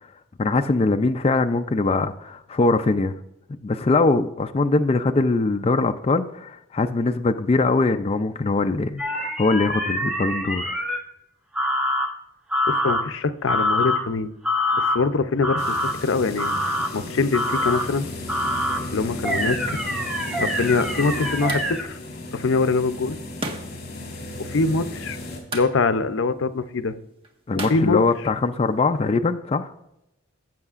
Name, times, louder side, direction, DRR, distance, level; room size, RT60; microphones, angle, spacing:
voice 1, 0.4-3.2 3.5-10.8 27.5-29.7, left 3 dB, 30° left, 7 dB, 0.4 m, -22 dB
sound 1, 9.0-11.0 11.6-12.1 12.5-13.0 13.5-14.0 14.4-15.0 15.4-15.9 16.4-16.9 17.3-17.9 18.3-18.8 19.2-21.8, left 1 dB, 5° right, 1.0 m, -25 dB
voice 2, 12.7-14.3 14.7-15.6 16.0-16.5 16.9-18.1 18.9-19.8 20.4-22.0 22.3-23.2 24.4-25.2 25.5-26.9 27.5-28.0, left 4 dB, 75° left, 11 dB, 0.6 m, -23 dB
sound 2, 15.6-25.4, left 2 dB, 50° left, 3.1 m, -34 dB
sound 3, 21.5-28.8, right 2 dB, 30° right, 1.4 m, -40 dB
15.0 x 7.9 x 2.5 m, 0.84 s
head